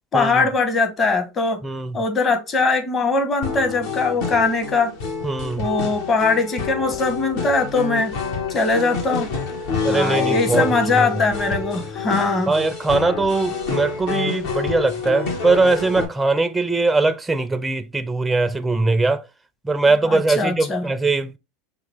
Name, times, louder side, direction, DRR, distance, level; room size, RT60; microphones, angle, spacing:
voice 1, 0.1-1.6 1.9-4.9 5.6-8.1 8.5-9.3 9.9-12.5 20.0-20.9, left 3 dB, 30° left, 1.1 m, -21 dB
voice 2, 1.6-2.0 5.2-5.6 9.8-10.7 11.0-11.1 12.5-19.2 19.6-21.4, right 3 dB, 10° right, 0.4 m, -21 dB
sound 1, 3.4-16.1, left 5 dB, 70° left, 1.5 m, -27 dB
5.8 x 2.4 x 3.4 m
hypercardioid pair, 100°, 0 cm